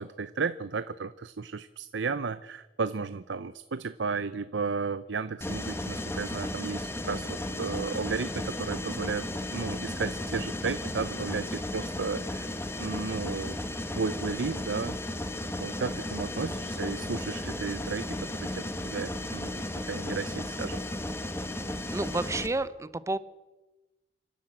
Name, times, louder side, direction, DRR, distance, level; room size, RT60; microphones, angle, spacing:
voice 1, 0.0-9.3 9.5-12.5 12.8-13.6 13.9-15.0 15.6-19.5 19.9-20.8, right 4 dB, 90° right, 14 dB, 0.7 m, -34 dB
Mechanisms, 5.4-22.5, left 1 dB, 15° left, 1.5 m, -35 dB
voice 2, 16.4-16.8 21.9-23.2, right 2 dB, 15° right, 16 dB, 0.7 m, -31 dB
27.0 x 12.0 x 8.8 m, 1.1 s
head